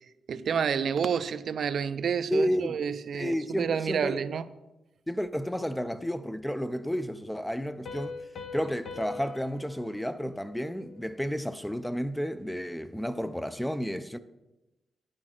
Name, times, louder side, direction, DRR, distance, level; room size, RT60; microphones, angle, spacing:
voice 1, 0.3-4.4, right 7 dB, 65° right, 0.4 m, -29 dB
voice 2, 2.3-2.8 3.1-4.2 5.1-8.1 8.5-14.2, equal, 5° left, 0.4 m, -31 dB
Piano, 7.8-11.3, left 4 dB, 60° left, 0.8 m, -43 dB
9.5 x 6.4 x 4.4 m
cardioid pair, 105°, 0 cm